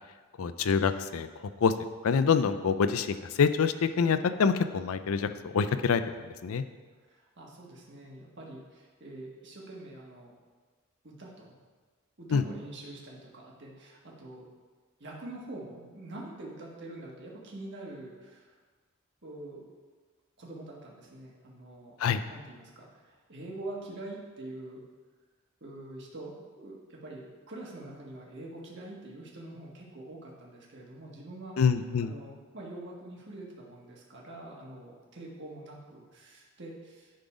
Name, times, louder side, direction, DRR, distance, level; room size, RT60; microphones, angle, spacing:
voice 1, 0.4-1.3 1.6-1.7 2.0-6.0 6.4-6.6 12.3-12.4 22.0-22.2 31.6-32.1, left 6 dB, 70° left, 11 dB, 0.4 m, -26 dB
voice 2, 7.1-10.3 11.0-11.5 12.2-14.4 15.0-18.5 19.2-19.7 20.4-21.9 22.3-24.8 25.6-31.6 32.0-37.1, right 2 dB, 55° right, -2 dB, 1.5 m, -45 dB
10.5 x 3.9 x 4.9 m, 1.4 s
head